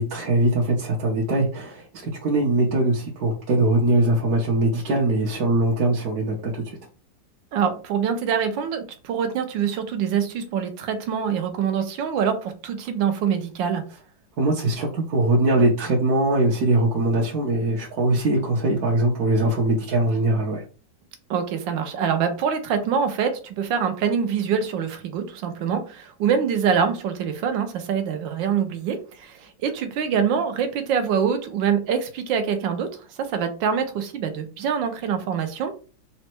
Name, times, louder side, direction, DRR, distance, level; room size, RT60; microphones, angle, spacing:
voice 1, 0.0-6.8 14.4-20.6, right 2 dB, 60° right, -3 dB, 1.1 m, -21 dB
voice 2, 7.5-13.8 21.3-32.9 33.2-35.8, right 7 dB, 80° right, 7 dB, 1.4 m, -25 dB
4.1 x 2.2 x 4.3 m, 0.36 s
omnidirectional pair, 2.1 m